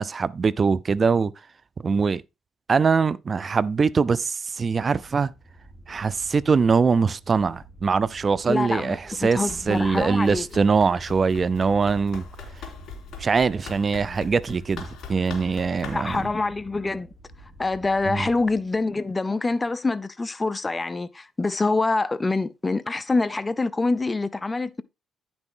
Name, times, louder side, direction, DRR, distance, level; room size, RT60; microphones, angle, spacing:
voice 1, 0.0-1.3 1.8-2.2 2.7-5.3 5.9-9.0 9.2-12.2 13.2-16.2 18.0-18.3, right 5 dB, 40° right, 0.4 m, -22 dB
sound 1, 4.8-19.0, right 1 dB, 5° left, 3.3 m, -49 dB
voice 2, 8.5-10.5 15.9-17.1 17.6-24.8, left 3 dB, 20° left, 0.6 m, -25 dB
Run, 9.4-16.3, left 4 dB, 75° left, 3.3 m, -41 dB
9.9 x 6.1 x 3.7 m
cardioid pair, 90°, 0 cm